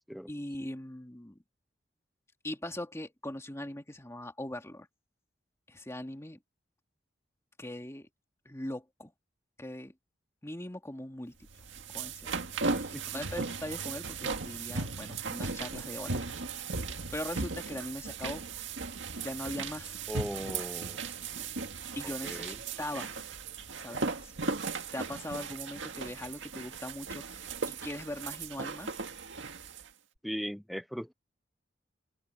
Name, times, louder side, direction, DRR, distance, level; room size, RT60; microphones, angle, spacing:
voice 1, 0.3-1.4 2.4-4.9 5.7-6.4 7.6-8.1 8.5-9.1 9.6-9.9 10.4-11.4 11.9-12.3 12.8-16.2 17.1-18.5 19.2-20.0 22.0-23.1 23.8-24.3 24.9-29.0, left 1 dB, 15° left, 2.2 m, -40 dB
sound 1, 11.5-29.9, right 4 dB, 80° right, 1.9 m, -37 dB
voice 2, 12.7-13.2 20.1-21.1 22.2-22.6 30.2-31.1, equal, ahead, 0.3 m, -38 dB
open air
head